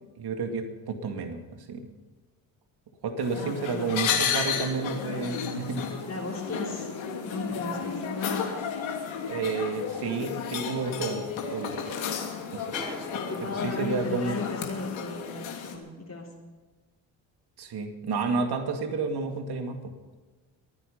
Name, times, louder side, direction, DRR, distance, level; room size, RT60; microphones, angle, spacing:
voice 1, 0.2-1.9 3.0-5.9 9.3-11.8 12.5-12.7 13.6-14.3 17.6-19.9, right 4 dB, 55° right, 5 dB, 2.4 m, -31 dB
sound 1, 3.2-15.7, left 7 dB, 70° left, 2.8 m, -33 dB
voice 2, 3.4-4.0 6.1-6.9 7.2-8.5 13.1-16.3, left 3 dB, 35° left, -4 dB, 3.7 m, -35 dB
sound 2, 11.5-13.8 14.7-14.8, equal, 10° right, 5.2 m, -44 dB
23.5 x 10.0 x 5.5 m, 1.3 s
supercardioid pair, 60°, 48 cm